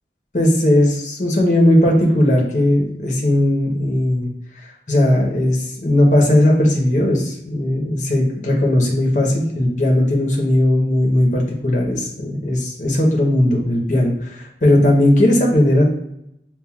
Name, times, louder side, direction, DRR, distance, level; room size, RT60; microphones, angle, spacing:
voice 1, 0.3-4.3 4.9-15.8, left 1 dB, 45° left, -1 dB, 1.0 m, -17 dB
7.1 x 2.6 x 2.4 m, 0.79 s
head